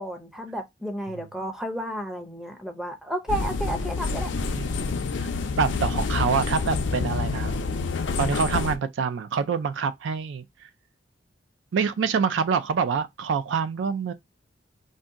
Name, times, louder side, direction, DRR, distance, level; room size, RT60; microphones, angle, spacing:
voice 1, 0.0-4.3, equal, 5° right, 0.5 m, -32 dB
sound 1, 3.3-8.8, left 4 dB, 70° left, 0.4 m, -28 dB
voice 2, 5.5-7.6 8.2-10.4 11.7-14.1, right 6 dB, 70° right, 0.3 m, -26 dB
2.7 x 2.1 x 3.6 m
head